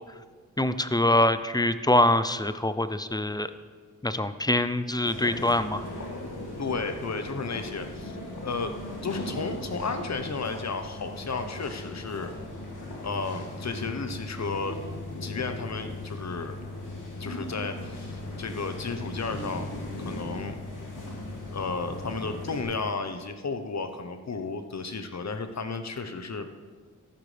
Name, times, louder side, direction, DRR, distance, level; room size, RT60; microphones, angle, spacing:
voice 1, 0.6-3.5 4.0-5.8, left 1 dB, 10° left, 12 dB, 0.5 m, -24 dB
sound 1, 5.0-22.6, left 1 dB, 70° left, 2.6 m, -38 dB
voice 2, 6.6-8.1 8.4-8.8 9.0-12.3 13.0-14.8 15.2-16.6 17.2-19.7 20.0-20.5 21.5-26.5, left 4 dB, 55° left, 7 dB, 1.0 m, -33 dB
13.5 x 11.5 x 3.4 m, 1.5 s
wide cardioid pair, 85°, 32 cm